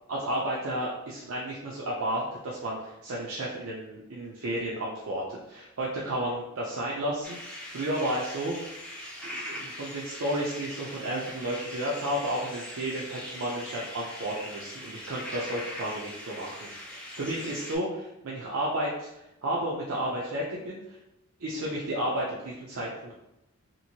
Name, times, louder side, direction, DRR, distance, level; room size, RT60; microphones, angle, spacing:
voice 1, 0.1-8.7 9.2-21.0 21.4-23.2, right 1 dB, 65° right, -5 dB, 0.5 m, -32 dB
sound 1, 7.2-17.7, left 1 dB, 5° left, 0.5 m, -41 dB
2.9 x 2.6 x 2.7 m, 0.89 s
head